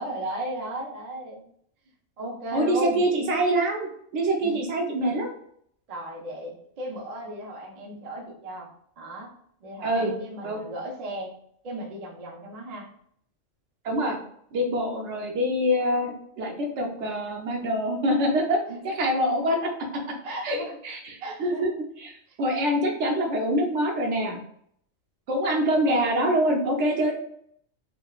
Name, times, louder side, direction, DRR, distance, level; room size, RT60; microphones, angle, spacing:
voice 1, 0.0-1.4 2.2-3.1 4.4-4.6 5.9-9.3 9.6-11.3 11.6-12.9 18.7-18.9 20.2-20.8 21.2-21.8 22.3-22.4, right 1 dB, 50° right, 0 dB, 0.4 m, -35 dB
voice 2, 2.5-5.3 9.8-10.1 10.4-10.6 13.8-14.2 14.5-19.7 20.4-20.6 20.8-21.7 22.0-24.4 25.3-27.1, equal, 70° right, 0 dB, 0.9 m, -25 dB
3.4 x 2.1 x 2.3 m, 0.67 s
omnidirectional pair, 1.3 m